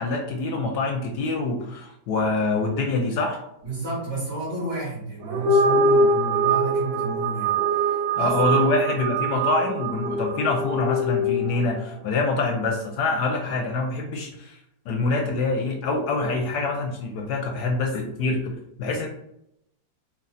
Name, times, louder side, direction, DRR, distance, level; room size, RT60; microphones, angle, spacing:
voice 1, 0.0-3.4 8.2-14.6 14.9-19.1, left 3 dB, 75° left, 3 dB, 1.0 m, -25 dB
voice 2, 3.6-8.3 14.1-14.3, right 2 dB, 60° right, -8 dB, 2.2 m, -31 dB
sound 1, 5.2-11.8, right 2 dB, 90° right, 1.5 m, -23 dB
4.8 x 2.1 x 4.1 m, 0.78 s
omnidirectional pair, 2.1 m